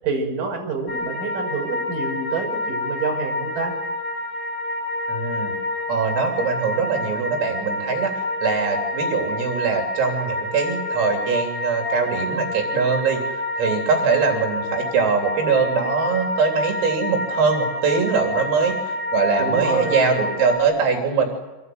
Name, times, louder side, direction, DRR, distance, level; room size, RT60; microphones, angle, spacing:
voice 1, 0.0-3.7 19.4-20.1, right 4 dB, 40° right, 1 dB, 7.3 m, -27 dB
sound 1, 0.9-20.6, left 2 dB, 25° left, 5.9 m, -28 dB
voice 2, 5.1-5.6 5.9-21.3, right 5 dB, 80° right, 2 dB, 6.0 m, -22 dB
26.0 x 22.0 x 9.4 m, 1.1 s
omnidirectional pair, 5.9 m